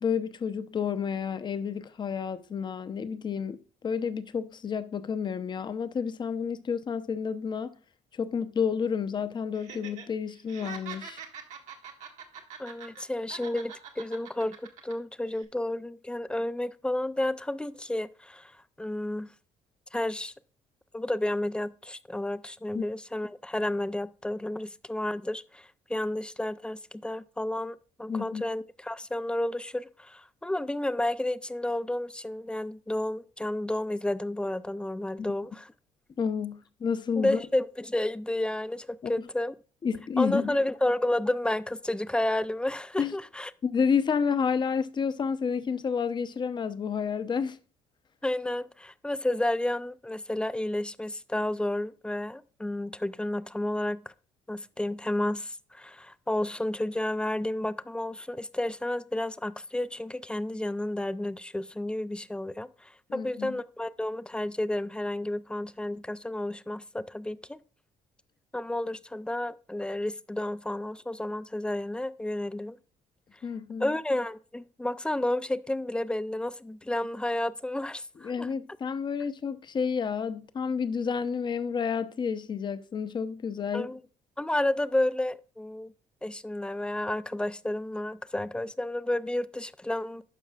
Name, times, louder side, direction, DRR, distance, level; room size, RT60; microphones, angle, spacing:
voice 1, 0.0-7.7 8.1-11.2 22.7-22.8 28.1-28.4 35.2-35.3 36.2-37.4 39.0-39.1 39.8-40.6 43.0-43.1 43.6-47.6 63.1-63.6 73.4-73.9 78.2-83.9, left 6 dB, 35° left, 0.7 m, -30 dB
Laughter, 9.5-10.1 10.4-13.0 13.3-14.9 15.3-15.4, right 7 dB, 65° right, 1.6 m, -44 dB
voice 2, 12.6-14.6 14.8-19.3 19.9-20.3 20.9-35.7 37.2-39.5 40.2-43.5 48.2-54.0 54.5-67.6 68.5-72.8 73.8-78.5 83.7-84.0 84.4-85.9 86.2-90.2, left 1 dB, 5° left, 0.3 m, -31 dB
12.0 x 5.4 x 2.4 m
cardioid pair, 100°, 13 cm